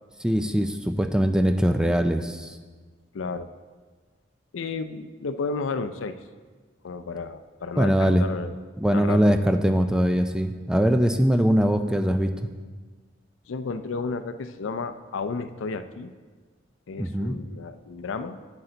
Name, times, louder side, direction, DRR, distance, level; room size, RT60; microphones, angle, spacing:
voice 1, 0.2-2.6 7.8-8.3 8.8-12.3 17.0-17.4, equal, 5° right, 7 dB, 0.3 m, -22 dB
voice 2, 3.1-3.5 4.5-6.2 6.8-8.5 8.9-9.4 13.5-16.1 16.9-18.4, left 4 dB, 80° left, 11 dB, 0.5 m, -32 dB
8.4 x 8.0 x 3.9 m, 1.4 s
head